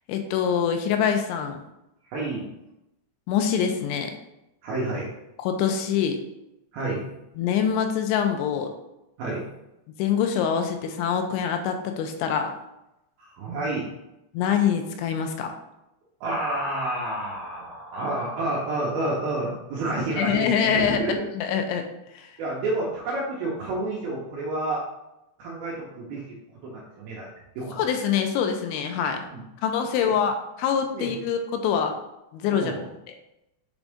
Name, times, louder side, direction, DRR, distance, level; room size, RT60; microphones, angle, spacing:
voice 1, 0.1-1.6 3.3-4.1 5.4-6.2 7.4-8.7 10.0-12.5 14.3-15.5 20.1-21.9 22.1-22.3 27.7-29.2 29.6-32.0 32.3-32.7 33.1-33.2, left 7 dB, 85° left, 5 dB, 2.9 m, -25 dB
voice 2, 2.1-2.5 4.6-5.1 6.7-7.1 9.2-9.5 13.2-13.9 16.2-21.3 22.4-24.8 25.4-26.4 26.6-27.3 27.6-27.8 29.3-29.4 30.0-30.1 30.9-31.1 32.5-32.9, right 2 dB, 75° right, -4 dB, 2.4 m, -29 dB
7.1 x 3.9 x 3.5 m, 0.89 s
omnidirectional pair, 5.4 m